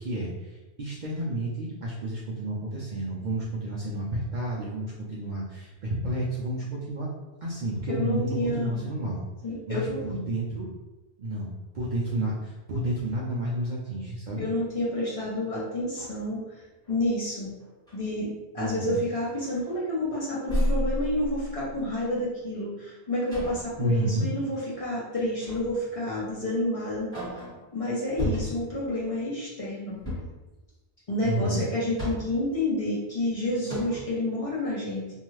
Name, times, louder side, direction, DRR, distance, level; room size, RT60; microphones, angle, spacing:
voice 1, 0.0-7.1 7.4-9.2 9.7-10.7 11.2-14.5 18.6-19.0 23.8-24.3 31.2-31.6, right 1 dB, 55° right, -5 dB, 0.5 m, -30 dB
voice 2, 8.0-8.8 9.4-10.0 14.3-16.4 16.9-17.5 17.9-27.1 27.7-30.0 31.1-35.0, left 1 dB, 35° left, -7 dB, 0.7 m, -29 dB
sound 1, 15.8-17.1 17.6-18.0 18.6-18.8 19.2-20.1 20.4-22.0 23.3-23.8 25.4-25.8 26.3-26.4 26.9-27.7 28.2-28.8 30.0-30.5 31.6-32.5 33.2-33.3 33.7-34.2, equal, 5° left, 1.2 m, -33 dB
2.7 x 2.3 x 3.1 m, 1.1 s
omnidirectional pair, 1.2 m